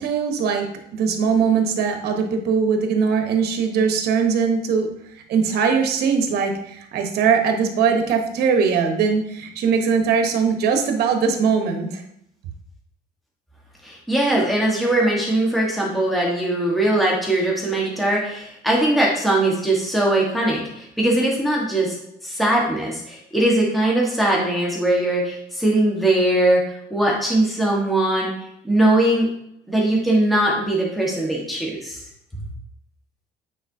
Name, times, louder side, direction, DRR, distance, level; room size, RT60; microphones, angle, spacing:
voice 1, 0.0-4.9 5.3-12.0, right 6 dB, 70° right, 5 dB, 1.0 m, -21 dB
voice 2, 13.8-22.0 22.2-28.3 28.6-29.3 29.7-32.0 32.3-32.4, right 1 dB, ahead, -3 dB, 1.3 m, -20 dB
8.9 x 4.1 x 2.7 m, 0.77 s
cardioid pair, 110°, 17 cm